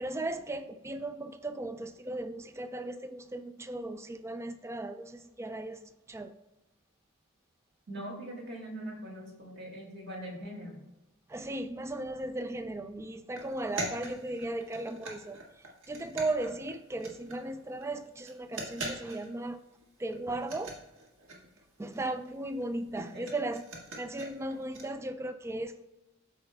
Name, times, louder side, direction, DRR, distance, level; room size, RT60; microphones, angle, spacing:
voice 1, 0.0-6.4 11.3-19.6 20.0-20.8 21.8-23.7 24.0-25.9, right 2 dB, 15° right, 0.3 m, -36 dB
voice 2, 7.9-10.8 22.9-23.3, right 1 dB, 55° right, 2.0 m, -42 dB
sound 1, 13.4-17.5 17.8-17.9 18.2-19.5 19.8-19.9 20.1-24.8, right 2 dB, 75° right, 1.5 m, -42 dB
13.0 x 4.7 x 2.2 m
head